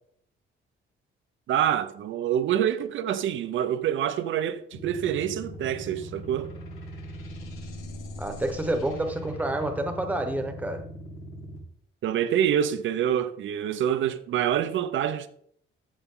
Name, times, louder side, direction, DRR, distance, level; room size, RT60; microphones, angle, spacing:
voice 1, 1.5-6.5 12.0-15.3, right 10 dB, 70° right, 0.9 m, -26 dB
sound 1, 4.7-11.6, equal, 85° left, 4.6 m, -40 dB
voice 2, 8.2-10.8, right 1 dB, 5° right, 1.2 m, -28 dB
14.5 x 6.7 x 3.9 m
cardioid pair, 175°, 21 cm